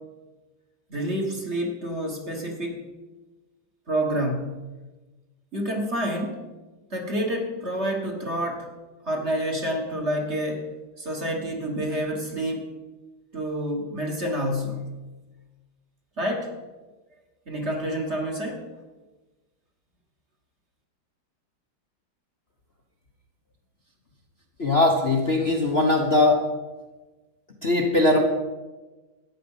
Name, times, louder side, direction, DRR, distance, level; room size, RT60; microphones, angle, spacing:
voice 1, 0.9-2.8 3.9-4.6 5.5-6.4 6.9-8.7 9.0-10.6 11.0-12.7 13.3-14.9 16.2-16.5 17.5-18.6, equal, 35° right, 1 dB, 1.8 m, -28 dB
voice 2, 24.6-26.4 27.6-28.2, left 2 dB, 35° left, 0 dB, 1.1 m, -20 dB
13.0 x 9.6 x 5.7 m, 1.2 s
omnidirectional pair, 2.3 m